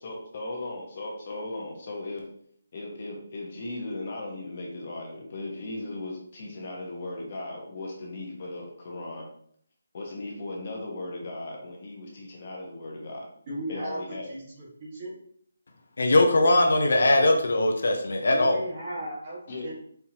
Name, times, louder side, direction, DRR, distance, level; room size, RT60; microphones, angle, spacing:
voice 1, 0.0-2.2 2.7-9.3 9.9-13.3 13.7-14.3 19.5-19.7, left 2 dB, 35° left, -1 dB, 1.0 m, -37 dB
voice 2, 13.5-15.1 18.2-19.7, right 1 dB, 30° right, -6 dB, 1.6 m, -36 dB
voice 3, 16.0-18.7, left 2 dB, 65° left, 3 dB, 0.7 m, -21 dB
4.4 x 3.6 x 2.8 m, 0.63 s
hypercardioid pair, 170°, 0 cm